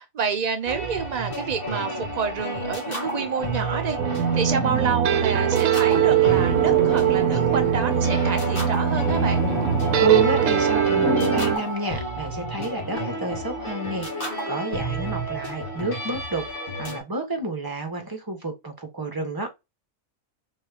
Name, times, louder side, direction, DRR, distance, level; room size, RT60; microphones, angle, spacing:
voice 1, 0.0-9.4, right 6 dB, 70° right, 0.4 m, -29 dB
sound 1, 0.7-17.0, right 1 dB, 40° left, 2.1 m, -30 dB
sound 2, 4.0-11.6, right 9 dB, 90° right, 1.1 m, -22 dB
sound 3, 5.9-11.8, left 5 dB, 60° left, 1.4 m, -33 dB
voice 2, 10.0-19.5, right 4 dB, 15° right, 1.4 m, -28 dB
4.7 x 3.9 x 2.8 m
omnidirectional pair, 1.4 m